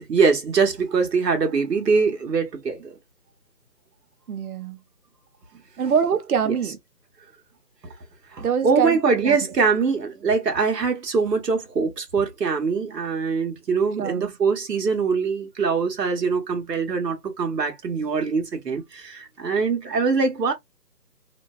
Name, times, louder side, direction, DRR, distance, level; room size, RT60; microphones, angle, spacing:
voice 1, 0.0-3.0 6.5-6.6 8.3-20.5, right 5 dB, 85° right, 1.0 m, -23 dB
voice 2, 4.3-4.8 5.8-6.8 8.4-9.4 14.0-14.3, right 7 dB, 65° right, 0.7 m, -24 dB
2.6 x 2.2 x 2.2 m
hypercardioid pair, 170°, 48 cm